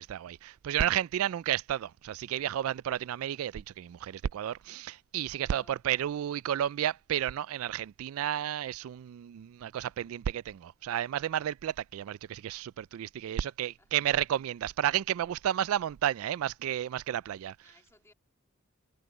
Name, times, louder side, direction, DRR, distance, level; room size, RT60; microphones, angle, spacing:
voice 1, 0.0-17.6, right 10 dB, 75° right, 0.3 m, -32 dB
voice 2, 5.3-6.1 13.2-13.9 17.6-18.1, left 2 dB, 10° left, 2.5 m, -63 dB
head